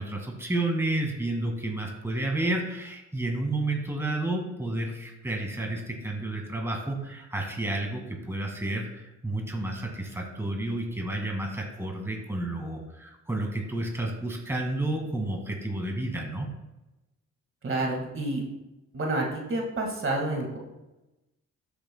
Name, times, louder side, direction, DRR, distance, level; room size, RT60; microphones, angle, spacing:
voice 1, 0.0-16.5, right 2 dB, 10° right, 1 dB, 2.0 m, -31 dB
voice 2, 17.6-18.4 18.9-20.6, right 2 dB, 45° right, 0 dB, 1.9 m, -29 dB
13.5 x 7.0 x 2.3 m, 0.98 s
cardioid pair, 90°, 30 cm